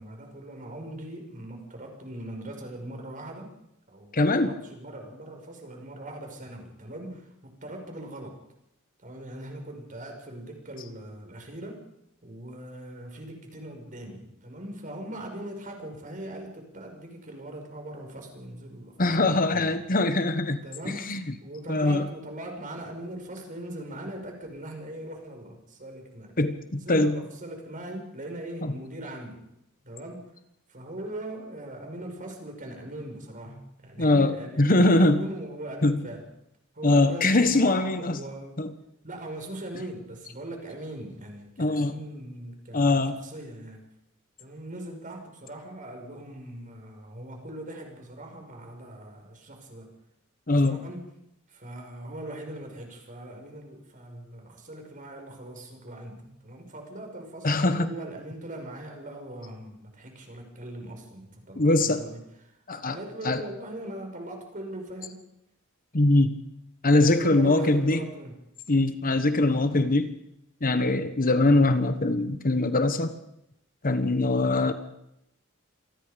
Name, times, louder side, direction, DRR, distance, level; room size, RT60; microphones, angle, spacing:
voice 1, 0.0-3.5 3.9-8.4 9.0-11.8 12.2-19.8 20.6-26.4 26.7-29.4 29.8-30.3 30.7-36.2 36.7-38.6 39.0-43.8 44.4-49.9 50.5-51.1 51.5-62.6 62.9-65.2 67.1-68.4, right 1 dB, 40° right, 3 dB, 5.7 m, -40 dB
voice 2, 4.1-4.5 19.0-20.6 21.1-21.2 21.7-22.1 26.4-27.2 28.6-28.7 34.0-34.3 34.6-35.2 35.8-36.0 36.8-38.2 38.6-38.7 41.6-41.9 42.7-43.2 50.5-50.8 57.4-57.9 61.6-62.0 62.7-63.0 63.2-63.4 65.9-66.3 66.8-68.0 68.7-70.1 70.6-73.2 73.8-74.7, left 2 dB, 40° left, 10 dB, 1.3 m, -22 dB
27.0 x 20.0 x 5.2 m, 0.80 s
head